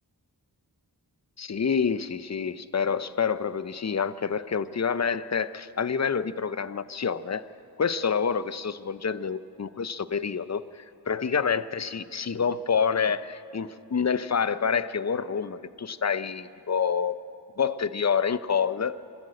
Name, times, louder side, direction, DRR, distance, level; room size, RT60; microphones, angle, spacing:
voice 1, 1.4-7.5 7.8-17.2 17.6-19.0, left 6 dB, 40° left, 15 dB, 0.6 m, -27 dB
25.0 x 13.0 x 8.7 m, 2.8 s
wide cardioid pair, 70°, 40 cm